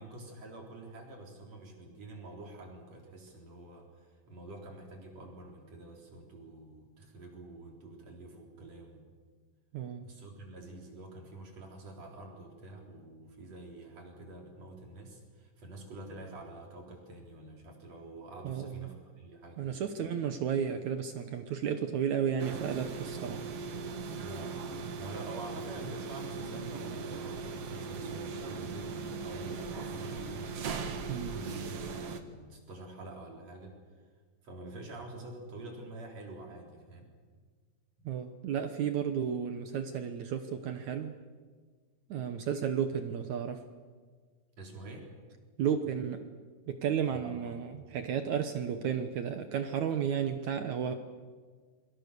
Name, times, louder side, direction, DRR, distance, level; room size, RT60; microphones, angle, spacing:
voice 1, 0.0-9.1 10.0-19.8 24.2-24.6 25.0-30.6 31.2-33.8 34.4-37.1 44.6-45.1 47.1-48.1, right 2 dB, 40° right, 2 dB, 4.8 m, -47 dB
voice 2, 9.7-10.1 18.4-18.9 19.6-23.4 27.1-27.2 31.1-31.4 38.0-41.2 42.1-43.6 45.6-46.3 46.7-50.9, right 8 dB, 75° right, 8 dB, 1.7 m, -33 dB
sound 1, 22.4-32.2, right 5 dB, 60° right, 1.7 m, -39 dB
28.0 x 23.5 x 6.9 m, 1.5 s
omnidirectional pair, 4.9 m